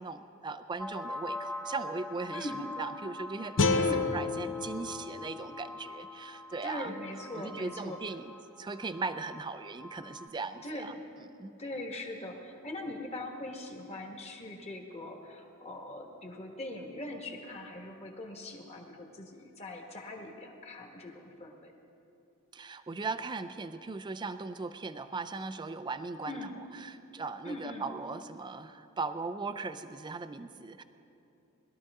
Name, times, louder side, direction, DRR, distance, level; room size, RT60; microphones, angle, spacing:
voice 1, 0.0-3.8 4.1-6.9 7.3-10.9 11.3-11.5 22.5-26.5 26.7-30.8, right 4 dB, 20° right, 9 dB, 0.4 m, -38 dB
sound 1, 0.8-10.3, left 1 dB, 5° left, 0.7 m, -44 dB
voice 2, 2.3-2.6 3.7-4.1 6.6-8.0 10.6-11.0 11.6-21.7 26.3-26.6 27.4-27.8, left 1 dB, 30° left, 1 dB, 1.4 m, -41 dB
sound 2, 3.6-6.7, left 4 dB, 60° left, 0.7 m, -31 dB
20.5 x 12.5 x 3.6 m, 2.8 s
head